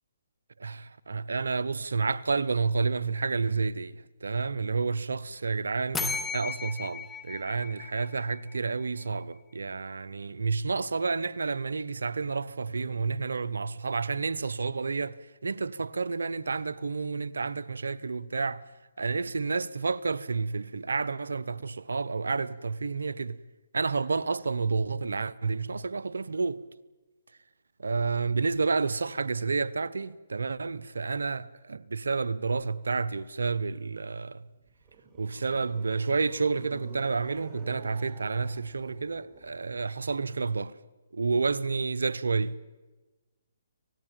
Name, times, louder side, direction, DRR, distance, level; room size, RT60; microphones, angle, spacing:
voice 1, 0.6-15.2 15.4-18.6 19.0-23.4 23.7-26.6 27.8-34.5 35.2-40.7 41.1-42.6, right 4 dB, 85° right, 0.8 m, -30 dB
sound 1, 5.9-8.7, left 5 dB, 10° left, 1.3 m, -36 dB
sound 2, 34.5-39.9, right 5 dB, 25° right, 4.2 m, -49 dB
25.5 x 18.5 x 9.0 m
hypercardioid pair, 145°, 0 cm